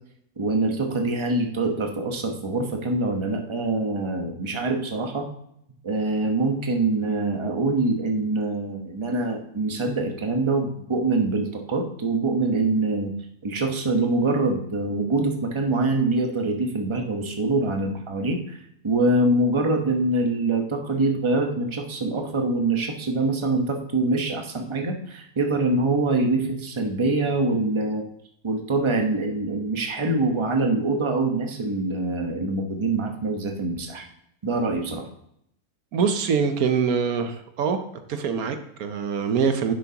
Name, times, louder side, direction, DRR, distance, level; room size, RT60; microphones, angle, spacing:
voice 1, 0.4-5.3 5.8-13.1 13.4-18.6 18.8-28.0 28.4-34.0 34.4-35.1, right 2 dB, 20° right, 3 dB, 1.0 m, -24 dB
voice 2, 35.9-37.8 38.1-39.7, right 6 dB, 75° right, 8 dB, 1.2 m, -24 dB
10.5 x 7.5 x 2.9 m, 0.73 s
omnidirectional pair, 1.6 m